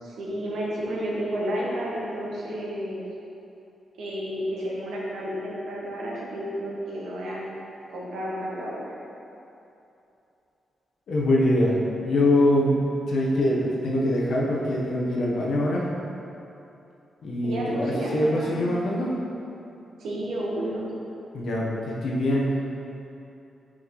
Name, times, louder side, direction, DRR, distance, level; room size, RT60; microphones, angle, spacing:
voice 1, 0.0-3.0 4.0-7.5 7.9-8.9 17.4-18.6 20.0-20.9, equal, 85° right, -5 dB, 1.3 m, -31 dB
voice 2, 11.1-12.8 13.1-15.8 17.2-19.2 21.3-22.5, left 1 dB, 75° left, -4 dB, 1.1 m, -23 dB
6.2 x 5.4 x 3.1 m, 2.8 s
wide cardioid pair, 130°, 0 cm